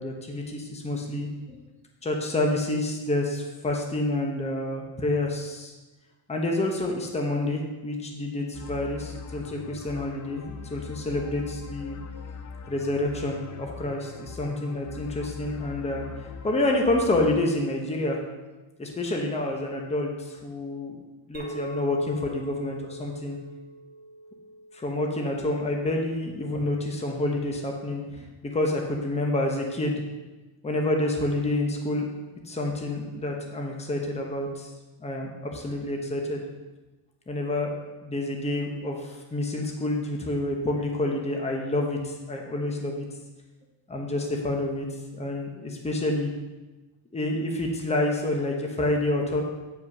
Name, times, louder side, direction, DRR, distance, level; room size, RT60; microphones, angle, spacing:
voice 1, 0.0-1.6 2.0-5.7 6.3-12.0 12.7-18.2 18.8-21.0 21.3-23.4 24.7-30.0 30.6-32.1 32.4-34.7 35.0-36.4 37.3-43.1 43.9-44.9 45.1-46.3 47.1-49.4, left 1 dB, 15° left, 1 dB, 0.9 m, -28 dB
sound 1, 8.5-17.4, left 6 dB, 40° left, 0.5 m, -41 dB
Chink clink, 21.3-25.8, equal, 20° right, 2.2 m, -41 dB
9.2 x 5.2 x 5.4 m, 1.2 s
cardioid pair, 165°, 45 cm